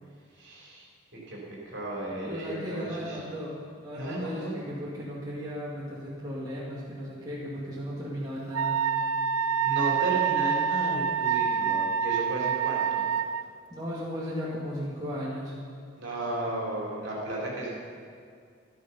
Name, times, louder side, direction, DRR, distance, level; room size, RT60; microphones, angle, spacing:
voice 1, 0.4-0.8 1.1-3.1 3.9-4.6 9.6-13.0 16.0-17.7, right 1 dB, 55° right, -4 dB, 4.0 m, -34 dB
voice 2, 2.2-8.8 13.7-15.5, equal, 20° right, -8 dB, 2.2 m, -36 dB
Wind instrument woodwind instrument, 8.5-13.4, right 7 dB, 80° right, 0.4 m, -27 dB
13.5 x 12.5 x 5.6 m, 2.2 s
head